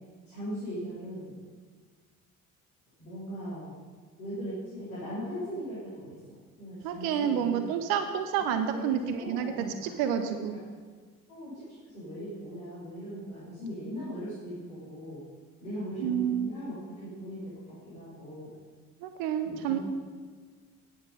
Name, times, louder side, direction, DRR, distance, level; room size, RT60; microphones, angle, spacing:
voice 1, 0.3-1.3 3.0-3.7 4.2-7.7 8.4-10.6 11.3-15.2 15.6-17.5 17.8-18.5 19.4-19.8, equal, 75° left, -10 dB, 3.1 m, -39 dB
voice 2, 6.8-10.6 16.0-16.5 19.0-19.8, right 9 dB, 55° right, 8 dB, 0.8 m, -29 dB
9.6 x 7.7 x 5.4 m, 1.5 s
figure-of-eight pair, 50°, 43 cm